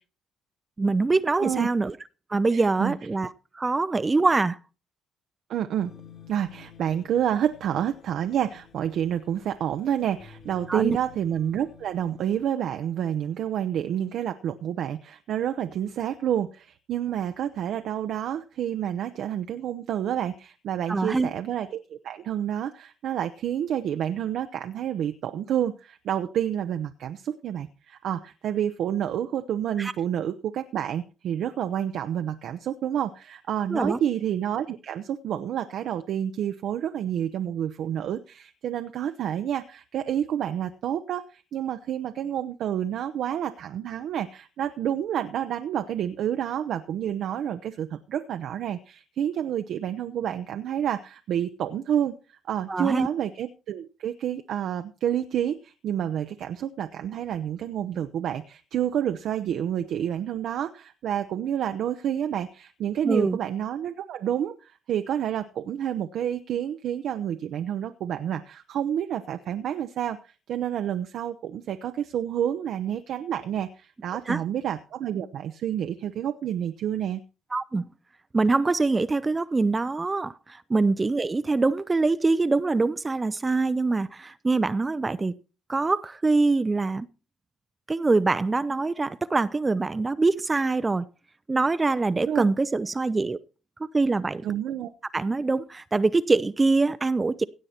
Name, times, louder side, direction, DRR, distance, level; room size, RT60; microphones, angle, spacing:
voice 1, 0.8-2.0 2.3-4.6 10.7-11.0 20.9-21.3 29.8-29.9 33.7-34.0 52.7-53.1 63.0-63.4 74.3-74.4 77.5-77.9 78.3-85.3 85.7-87.1 87.9-91.1 91.5-93.4 93.9-94.5 95.1-97.4, right 3 dB, 25° right, 0.6 m, -24 dB
voice 2, 2.5-3.0 5.5-5.9 6.3-77.2 92.2-92.4 94.4-94.9, right 10 dB, 70° right, 0.7 m, -29 dB
ac. guitar loop, 5.8-12.5, left 8 dB, 50° left, 3.9 m, -51 dB
17.0 x 8.0 x 4.3 m
supercardioid pair, 75°, 0 cm